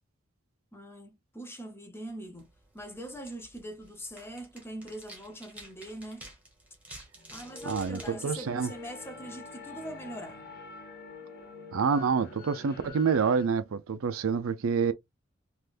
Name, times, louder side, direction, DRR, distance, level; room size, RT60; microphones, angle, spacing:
voice 1, 0.7-2.5 2.7-6.3 7.3-10.4, right 1 dB, 10° left, 0.7 m, -42 dB
sound 1, 2.3-9.2, right 1 dB, 5° right, 1.2 m, -51 dB
sound 2, 7.2-13.5, left 4 dB, 50° left, 0.9 m, -46 dB
voice 2, 7.7-8.7 11.7-14.9, right 6 dB, 85° right, 0.5 m, -27 dB
3.4 x 2.5 x 2.5 m
head